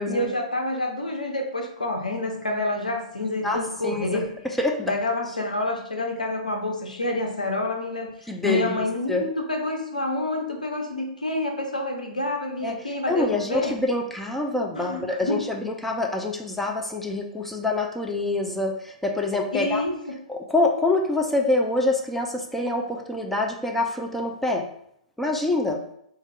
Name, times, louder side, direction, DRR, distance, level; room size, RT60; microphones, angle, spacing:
voice 1, 0.0-4.3 4.9-13.7 14.7-15.4 19.5-20.2, left 2 dB, 85° left, 2 dB, 0.8 m, -28 dB
voice 2, 3.4-4.9 8.3-9.3 12.6-12.8 13.1-19.8 20.3-24.7 25.2-25.8, left 2 dB, 5° left, 1 dB, 0.4 m, -26 dB
4.2 x 2.4 x 3.3 m, 0.71 s
figure-of-eight pair, 115°, 4 cm